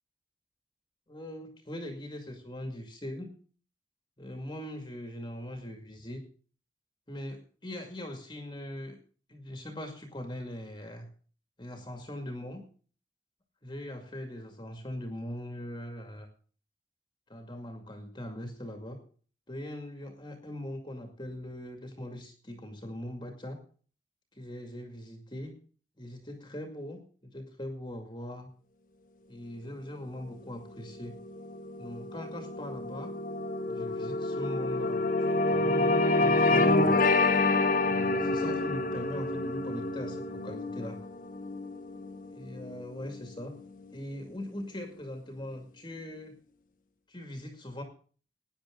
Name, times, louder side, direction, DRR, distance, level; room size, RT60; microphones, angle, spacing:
voice 1, 1.1-3.3 4.2-6.2 7.1-9.0 9.3-11.1 11.6-12.6 13.6-16.3 17.3-19.0 19.5-23.6 24.3-25.6 26.0-28.5 29.3-31.1 31.8-33.1 33.7-37.0 37.8-41.1 42.3-43.5 43.9-46.3 47.1-47.8, left 1 dB, 25° left, 4 dB, 2.2 m, -41 dB
sound 1, 30.9-43.5, left 2 dB, 50° left, 1.5 m, -28 dB
17.0 x 10.0 x 3.8 m, 0.41 s
head